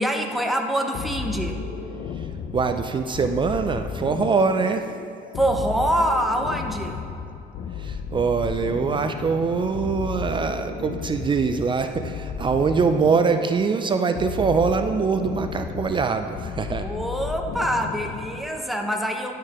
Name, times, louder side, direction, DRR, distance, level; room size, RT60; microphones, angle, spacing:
voice 1, 0.0-1.6 5.3-7.0 16.8-19.3, right 1 dB, ahead, 3 dB, 0.8 m, -25 dB
sound 1, 0.9-18.6, left 6 dB, 60° left, 0.6 m, -34 dB
voice 2, 2.1-4.9 7.7-16.9, right 5 dB, 30° right, 7 dB, 0.4 m, -23 dB
11.0 x 4.6 x 4.8 m, 2.6 s
cardioid pair, 110°, 17 cm